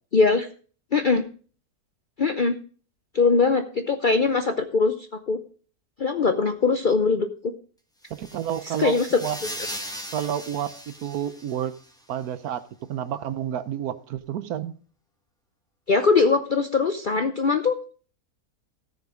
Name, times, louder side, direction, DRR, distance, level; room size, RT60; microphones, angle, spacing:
voice 1, 0.1-0.5 0.9-1.2 2.2-2.5 3.1-4.9 5.3-5.4 6.0-7.5 8.8-9.2 15.9-17.8, left 4 dB, 55° left, 0.5 m, -21 dB
sound 1, 8.0-11.9, equal, 5° left, 1.2 m, -38 dB
voice 2, 8.1-9.4 10.1-11.8 12.1-12.6 12.9-14.7, right 9 dB, 75° right, 1.3 m, -30 dB
13.5 x 6.6 x 4.9 m
omnidirectional pair, 1.7 m